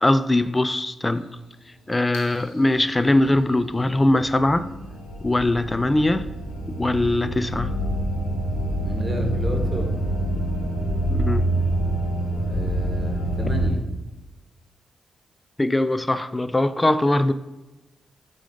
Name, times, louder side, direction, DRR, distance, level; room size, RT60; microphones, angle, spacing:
voice 1, 0.0-1.3 1.9-4.7 5.2-6.3 6.8-7.8 11.1-11.5 15.6-17.3, left 1 dB, 20° left, 0.3 m, -21 dB
sound 1, 2.1-13.7, right 1 dB, 90° left, 1.0 m, -27 dB
voice 2, 8.8-10.0 12.4-13.9, equal, 25° right, 1.5 m, -31 dB
4.8 x 3.8 x 5.3 m
supercardioid pair, 45°, 0 cm